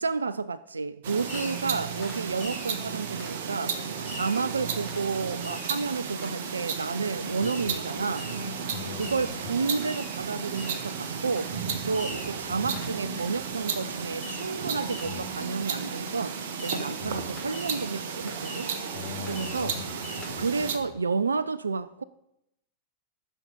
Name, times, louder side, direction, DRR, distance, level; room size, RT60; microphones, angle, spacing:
voice 1, 0.0-8.3 9.0-11.6 11.8-18.7 19.3-19.7 20.4-22.0, right 4 dB, 75° right, 0.4 m, -31 dB
sound 1, 1.0-20.8, right 6 dB, 55° right, 1.1 m, -34 dB
Fireworks, 1.3-1.7 2.0-2.8 3.2-3.4 4.0-4.5 4.9-5.1 5.4-5.8 6.2-6.3 7.4-7.8 8.1-8.5 9.0-9.3 9.8-10.2 10.5-10.9 11.4-11.5 11.9-12.4 12.7-13.0 14.2-14.6 14.9-15.3 15.8-15.9 16.6-16.9 17.4-17.9 18.3-18.8 19.3-19.7 20.0-20.3, left 2 dB, 15° left, 5.1 m, -43 dB
voice 2, 7.3-8.1 8.7-9.5 12.1-12.5 15.0-15.3 17.0-17.4 18.9-21.0, left 6 dB, 75° left, 3.0 m, -42 dB
14.5 x 6.4 x 5.3 m
figure-of-eight pair, 90°, 0 cm